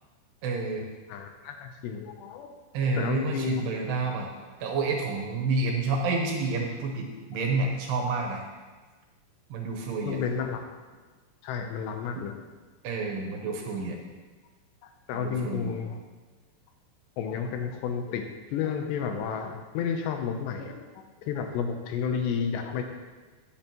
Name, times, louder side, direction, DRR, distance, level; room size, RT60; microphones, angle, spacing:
voice 1, 0.4-0.9 2.7-4.3 4.6-8.4 9.5-10.2 12.8-14.0 15.1-15.7, right 3 dB, 75° right, 1 dB, 2.9 m, -29 dB
voice 2, 1.1-2.5 2.9-3.6 10.0-10.6 11.4-12.4 13.5-13.6 15.1-16.0 17.2-18.3 18.5-20.8 21.2-22.8, left 6 dB, 80° left, 5 dB, 2.7 m, -31 dB
10.5 x 8.7 x 2.9 m, 1.3 s
omnidirectional pair, 5.2 m